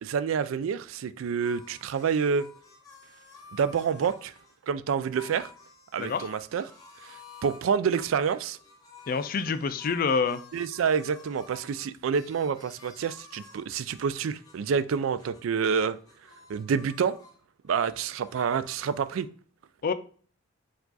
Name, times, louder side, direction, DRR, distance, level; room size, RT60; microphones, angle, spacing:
voice 1, 0.0-2.5 3.5-4.3 4.7-5.5 5.9-6.6 7.0-8.6 10.5-16.0 16.5-17.2 17.7-19.3, right 6 dB, 80° right, 0.3 m, -28 dB
sound 1, 1.2-4.6 5.1-7.6 7.9-15.5 15.7-17.4 17.6-19.2, left 4 dB, 20° left, 0.9 m, -52 dB
voice 2, 9.1-10.4 19.8-19.9, left 5 dB, 45° left, 0.4 m, -27 dB
4.7 x 2.4 x 3.9 m
head